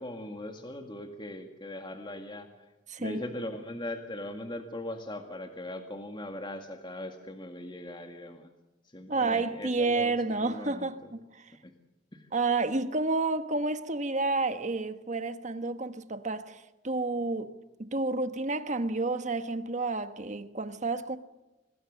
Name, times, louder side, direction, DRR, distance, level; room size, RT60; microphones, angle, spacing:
voice 1, 0.0-2.5 3.0-8.5 8.8-11.1 11.6-11.7 12.1-12.3, left 1 dB, 25° left, 1.9 m, -40 dB
voice 2, 2.9-3.2 9.1-11.5 12.3-17.5 17.8-21.2, right 3 dB, 40° right, 1.4 m, -30 dB
26.5 x 20.5 x 6.6 m
head